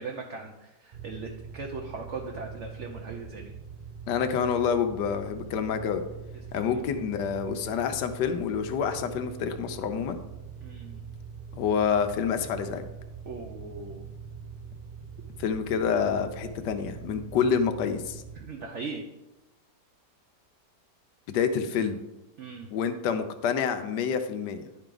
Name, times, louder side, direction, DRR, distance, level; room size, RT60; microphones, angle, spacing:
voice 1, 0.0-3.5 6.5-7.0 10.6-11.0 13.2-14.0 18.4-19.1 22.4-22.7, right 4 dB, 55° right, 2 dB, 0.9 m, -39 dB
sound 1, 0.9-18.4, right 6 dB, 85° right, 0.4 m, -43 dB
voice 2, 4.1-6.0 6.5-10.2 11.5-12.8 15.4-18.2 21.3-22.0 22.7-24.6, left 7 dB, 90° left, 8 dB, 1.3 m, -27 dB
10.5 x 4.5 x 3.8 m, 0.99 s
omnidirectional pair, 1.8 m